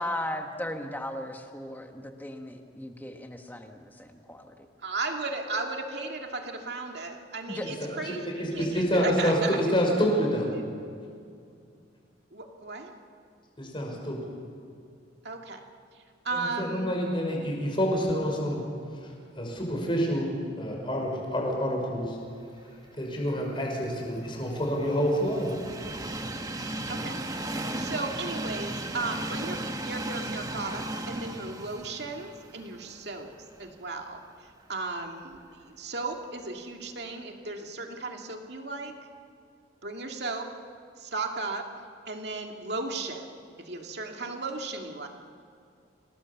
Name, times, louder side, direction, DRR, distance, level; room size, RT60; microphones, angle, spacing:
voice 1, 0.0-4.6 7.5-7.7, left 1 dB, 10° left, 4 dB, 1.6 m, -36 dB
voice 2, 4.8-9.6 10.5-10.6 12.3-12.9 15.2-15.6 15.9-16.9 26.9-27.2 27.5-33.3 33.6-39.0 39.8-40.5 41.0-41.7 42.1-43.3 43.6-45.1, right 3 dB, 60° right, 2 dB, 2.5 m, -35 dB
voice 3, 7.8-10.5 13.6-14.3 16.3-18.6 19.0-20.3 20.6-22.2 22.9-25.6, equal, 25° left, 0 dB, 5.7 m, -28 dB
Train, 23.6-33.7 34.1-34.2 35.3-35.4, right 1 dB, 20° right, 1.3 m, -36 dB
27.5 x 19.0 x 7.2 m, 2.4 s
head